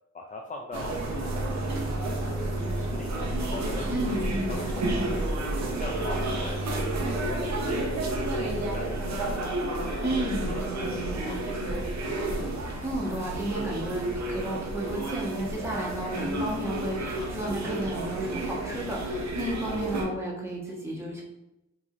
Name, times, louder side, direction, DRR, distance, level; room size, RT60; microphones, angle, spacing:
voice 1, 0.1-1.5 1.9-5.0 5.3-6.7 7.0-9.3 9.9-11.8, left 2 dB, 25° left, 1 dB, 0.4 m, -42 dB
sound 1, 0.7-20.0, right 1 dB, 65° right, 0.9 m, -31 dB
voice 2, 3.9-5.3 10.0-11.8 12.8-21.2, right 1 dB, 10° right, -5 dB, 1.4 m, -33 dB
sound 2, 5.6-18.0, left 2 dB, 70° left, 0.8 m, -49 dB
4.7 x 2.7 x 2.6 m, 0.92 s
cardioid pair, 70°, 30 cm